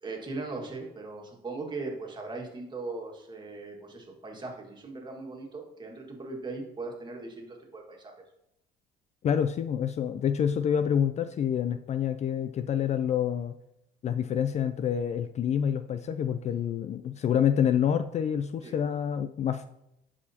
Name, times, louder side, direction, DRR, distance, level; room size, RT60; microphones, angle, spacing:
voice 1, 0.0-8.1 18.6-18.7, right 3 dB, 25° right, 0 dB, 1.8 m, -39 dB
voice 2, 9.2-13.5 14.0-19.7, left 8 dB, 40° left, 10 dB, 0.4 m, -27 dB
11.0 x 4.9 x 2.8 m, 0.82 s
cardioid pair, 110°, 17 cm